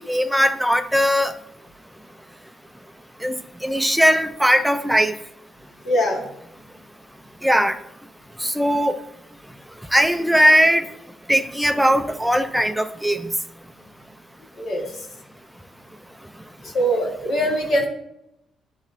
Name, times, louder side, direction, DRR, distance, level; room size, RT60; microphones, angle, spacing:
voice 1, 0.0-1.3 3.2-5.2 7.4-7.8 8.4-9.0 9.9-10.9 11.3-13.3, equal, 5° right, 9 dB, 0.5 m, -19 dB
voice 2, 5.8-6.2 14.6-14.9 16.7-17.9, equal, 65° left, -1 dB, 1.7 m, -21 dB
10.5 x 3.6 x 2.6 m, 0.83 s
cardioid pair, 90°, 0 cm